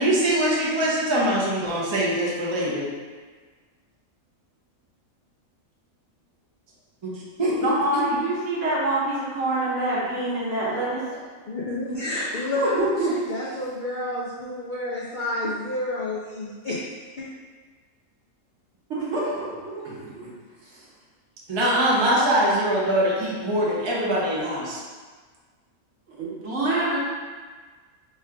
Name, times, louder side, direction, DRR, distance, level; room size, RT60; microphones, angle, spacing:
voice 1, 0.0-2.9 7.0-7.1 7.4-8.0 21.5-24.8, right 1 dB, 40° right, -5 dB, 0.4 m, -23 dB
voice 2, 7.6-11.1 12.4-13.1 18.9-20.3 20.6-20.8 26.1-27.0, right 2 dB, 60° right, -6 dB, 1.2 m, -26 dB
voice 3, 11.5-12.8 13.3-16.8 17.2-17.3, left 1 dB, 75° left, -5 dB, 0.4 m, -29 dB
3.3 x 2.4 x 4.4 m, 1.4 s
omnidirectional pair, 1.5 m